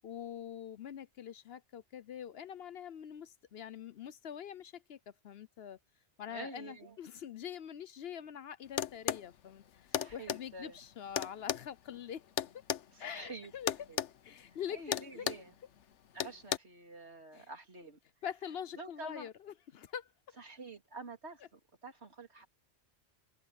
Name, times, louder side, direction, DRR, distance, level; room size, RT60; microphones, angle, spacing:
voice 1, 0.0-5.0 5.2-5.8 6.2-9.6 10.1-12.2 13.0-13.7 14.2-15.3 17.3-17.5 18.2-20.1, left 9 dB, 65° left, 0.9 m, -44 dB
voice 2, 6.3-7.0 10.0-10.8 12.9-13.5 13.9-14.0 14.5-15.5 16.1-18.0 18.7-19.3 20.4-22.5, right 3 dB, 70° right, 3.4 m, -48 dB
sound 1, 8.8-9.3 9.9-10.4 11.2-12.9 13.7-14.1 14.4-14.6 14.9-15.5 16.2-16.6, left 10 dB, 85° left, 1.1 m, -34 dB
open air
omnidirectional pair, 1.2 m